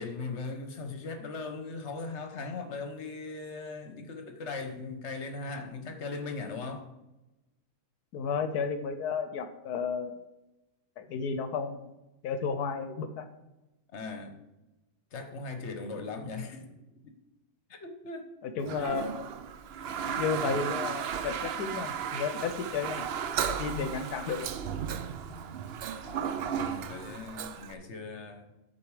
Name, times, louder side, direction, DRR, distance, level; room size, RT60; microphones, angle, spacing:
voice 1, 0.0-6.9 13.9-14.4 15.1-16.8 17.0-17.2 17.7-18.3 18.7-19.2 19.9-20.0 20.4-20.5 23.8-24.1 25.3-25.6 26.0-28.5, left 3 dB, 50° left, 6 dB, 1.2 m, -39 dB
voice 2, 8.1-10.3 11.0-11.9 12.2-13.3 18.4-19.3 20.0-23.1 23.5-24.5, left 5 dB, 80° left, 9 dB, 1.2 m, -33 dB
Toilet flush, 18.6-27.7, right 8 dB, 85° right, 0.5 m, -35 dB
10.5 x 4.8 x 4.8 m, 0.98 s
omnidirectional pair, 1.7 m